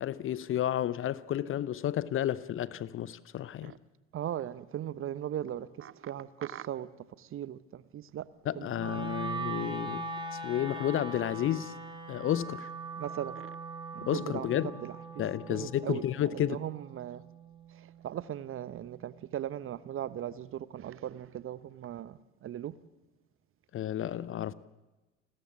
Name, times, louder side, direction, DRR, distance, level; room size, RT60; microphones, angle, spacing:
voice 1, 0.0-3.7 8.5-11.7 12.1-12.7 14.1-14.7 15.2-16.6 23.7-24.5, left 11 dB, 35° left, 0.7 m, -31 dB
voice 2, 4.1-6.9 7.2-8.2 8.5-9.1 9.7-9.8 13.0-13.6 13.9-15.2 15.5-17.2 17.7-22.7, right 11 dB, 35° right, 0.9 m, -39 dB
Wind instrument woodwind instrument, 8.7-18.9, right 3 dB, 15° right, 4.3 m, -41 dB
29.5 x 13.5 x 7.3 m
figure-of-eight pair, 60°, 37 cm